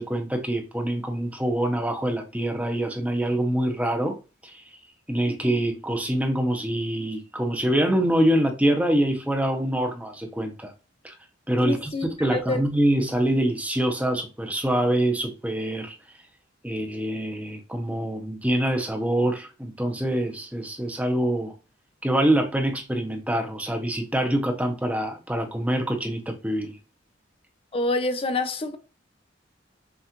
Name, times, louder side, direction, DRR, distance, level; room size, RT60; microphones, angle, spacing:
voice 1, 0.0-4.2 4.4-4.6 5.1-10.7 11.0-11.1 11.5-11.9 12.2-16.0 16.6-21.5 22.0-26.7, right 1 dB, 5° right, 0.7 m, -25 dB
voice 2, 11.6-12.6 27.7-28.8, left 2 dB, 30° left, 0.5 m, -27 dB
5.7 x 2.4 x 2.9 m
head